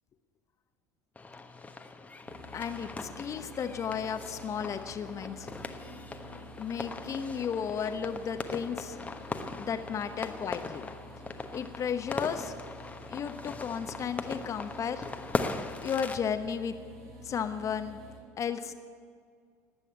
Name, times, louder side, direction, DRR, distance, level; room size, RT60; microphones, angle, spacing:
sound 1, 1.2-16.2, left 3 dB, 15° left, 1.2 m, -40 dB
sound 2, 2.3-18.2, equal, 65° right, 3.6 m, -49 dB
voice 1, 2.5-5.5 6.6-9.0 9.6-10.8 11.5-12.6 13.1-15.1 15.8-16.8 17.2-18.0 18.4-18.7, left 7 dB, 35° left, 9 dB, 1.0 m, -34 dB
19.0 x 8.3 x 8.2 m, 2.1 s
figure-of-eight pair, 65°, 9 cm